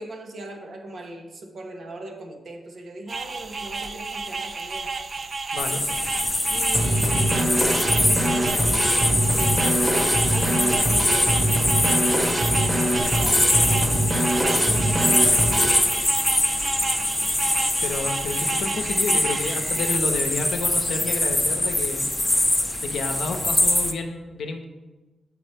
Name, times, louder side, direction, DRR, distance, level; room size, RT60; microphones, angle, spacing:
voice 1, 0.0-4.9 6.5-14.0 14.5-16.1, right 2 dB, 65° right, 2 dB, 1.0 m, -39 dB
sound 1, 3.1-20.0, right 4 dB, 45° right, 0.3 m, -31 dB
voice 2, 5.5-5.8 17.8-22.1 22.8-24.6, left 3 dB, 80° left, 5 dB, 0.6 m, -30 dB
sound 2, 5.6-23.9, left 1 dB, 10° left, 0.6 m, -23 dB
Drum kit / Snare drum, 6.7-15.8, right 1 dB, 20° right, 1.1 m, -24 dB
7.2 x 4.8 x 3.3 m, 1.2 s
cardioid pair, 65°, 0 cm